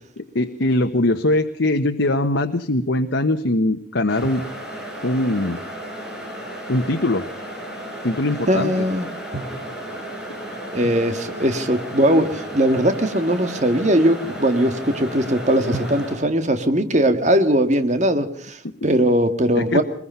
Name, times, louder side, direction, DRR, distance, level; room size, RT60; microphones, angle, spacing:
voice 1, 0.2-4.4 5.0-5.6 6.7-7.2 8.0-8.8 19.5-19.8, left 1 dB, 85° left, 6 dB, 1.2 m, -21 dB
sound 1, 4.1-16.1, right 1 dB, 5° right, 6.1 m, -34 dB
sound 2, 4.2-6.5 9.3-12.3 15.7-17.6, right 2 dB, 80° right, 4.5 m, -39 dB
voice 2, 8.5-9.1 10.7-19.8, right 1 dB, 40° right, 8 dB, 1.9 m, -20 dB
22.0 x 21.5 x 5.7 m, 0.65 s
head